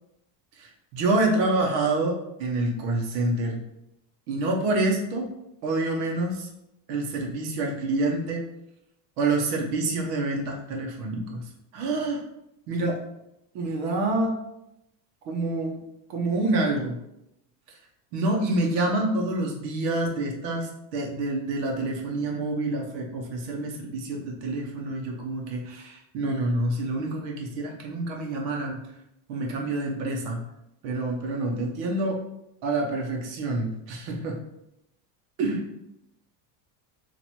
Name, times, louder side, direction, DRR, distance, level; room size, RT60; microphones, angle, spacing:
voice 1, 0.9-2.1 2.4-3.6 4.3-5.3 5.6-6.5 6.9-8.4 9.2-11.4 11.7-12.2 12.7-12.9 13.5-14.3 15.3-15.8 16.1-17.0 18.1-28.8 29.3-30.4 30.8-32.2 32.6-34.3 35.4-35.6, right 2 dB, 90° right, 0 dB, 1.0 m, -27 dB
2.9 x 2.5 x 4.2 m, 0.84 s
cardioid pair, 180°, 48 cm